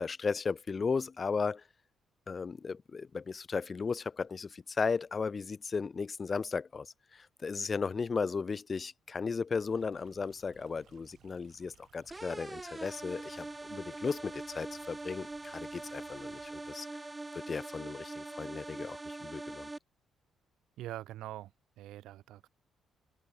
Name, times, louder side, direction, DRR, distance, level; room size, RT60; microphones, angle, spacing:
voice 1, 0.0-1.6 2.3-6.9 7.1-16.9 17.3-19.7, left 5 dB, 35° left, 0.6 m, -35 dB
Stream, 9.6-16.7, right 10 dB, 65° right, 4.3 m, -64 dB
sound 1, 12.1-19.8, right 2 dB, 15° right, 1.4 m, -43 dB
voice 2, 20.8-21.5 21.8-22.5, right 14 dB, 85° right, 0.4 m, -43 dB
cardioid pair, 90°, 0 cm